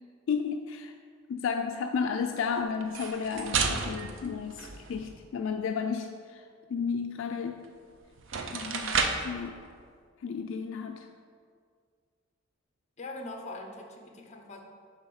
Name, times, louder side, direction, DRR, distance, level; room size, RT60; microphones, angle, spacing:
voice 1, 0.3-0.9 1.3-6.4 6.7-7.7 8.5-9.6 10.2-11.1, left 6 dB, 70° left, 5 dB, 0.3 m, -33 dB
sound 1, 2.8-5.2 7.6-7.7 8.2-9.4, right 5 dB, 65° right, 0.5 m, -32 dB
voice 2, 13.0-14.6, left 2 dB, 35° left, 2 dB, 0.8 m, -42 dB
7.2 x 3.4 x 5.6 m, 2.1 s
head